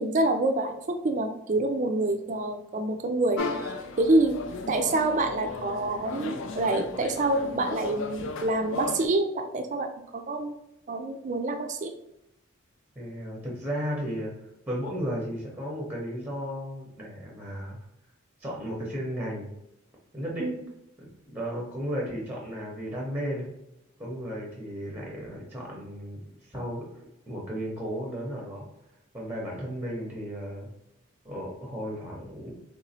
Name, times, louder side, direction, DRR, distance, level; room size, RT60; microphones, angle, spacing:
voice 1, 0.0-4.4 4.7-10.6 10.9-11.9 20.4-20.5, right 2 dB, 35° right, 6 dB, 0.4 m, -27 dB
sound 1, 3.4-9.1, left 4 dB, 65° left, 0.4 m, -35 dB
voice 2, 12.9-17.8 18.4-19.5 20.1-20.5 21.0-23.5 24.0-26.8 27.3-28.7 29.1-30.7 31.2-32.5, equal, 10° right, -2 dB, 0.7 m, -34 dB
3.6 x 3.0 x 2.7 m, 0.84 s
head